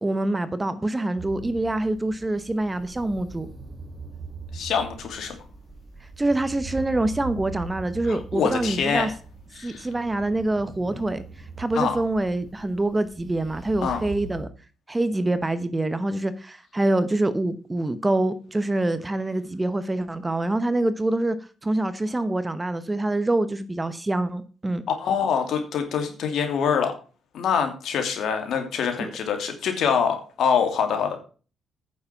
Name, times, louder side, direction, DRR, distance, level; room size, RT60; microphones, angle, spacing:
voice 1, 0.0-3.5 6.2-9.1 9.6-11.2 11.6-14.5 14.9-21.4 21.6-24.8 29.0-29.1, right 2 dB, 15° right, 1.1 m, -25 dB
sound 1, 1.2-14.5, right 3 dB, 35° right, 1.9 m, -41 dB
voice 2, 4.5-5.3 8.1-9.1 9.6-9.9 11.7-12.0 13.8-14.0 25.0-26.9 27.3-31.2, left 7 dB, 70° left, 2.7 m, -25 dB
9.4 x 7.2 x 5.9 m
cardioid pair, 90°, 0 cm